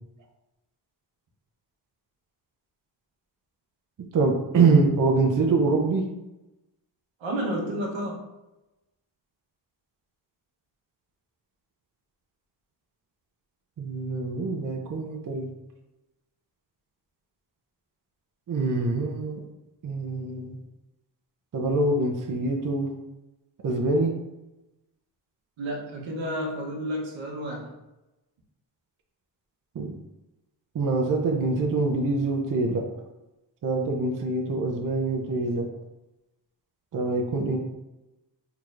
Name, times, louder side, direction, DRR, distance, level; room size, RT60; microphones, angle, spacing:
voice 1, 4.1-6.1 13.8-15.5 18.5-19.4 19.8-20.6 21.5-22.9 23.6-24.1 29.7-30.0 30.7-32.9 33.6-35.7 36.9-37.6, right 3 dB, 45° right, 1 dB, 0.7 m, -24 dB
voice 2, 7.2-8.2 25.6-27.7, equal, 80° right, -2 dB, 1.0 m, -31 dB
4.3 x 2.9 x 2.5 m, 0.99 s
cardioid pair, 75°, 46 cm